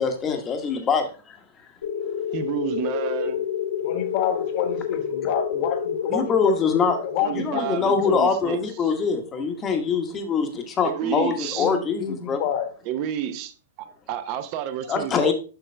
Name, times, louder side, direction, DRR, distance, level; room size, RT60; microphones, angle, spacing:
voice 1, 0.0-1.4 6.1-7.1 7.3-12.4 14.9-15.3, left 5 dB, 15° left, 1.1 m, -24 dB
sound 1, 1.8-10.1, left 8 dB, 85° left, 2.2 m, -30 dB
voice 2, 2.3-3.4 7.2-8.9 10.8-11.7 12.9-13.5 13.8-15.3, right 10 dB, 35° right, 0.8 m, -30 dB
voice 3, 3.8-6.5 7.1-8.2 11.6-12.7, left 9 dB, 35° left, 1.2 m, -28 dB
6.8 x 5.9 x 3.3 m
hypercardioid pair, 155°, 0 cm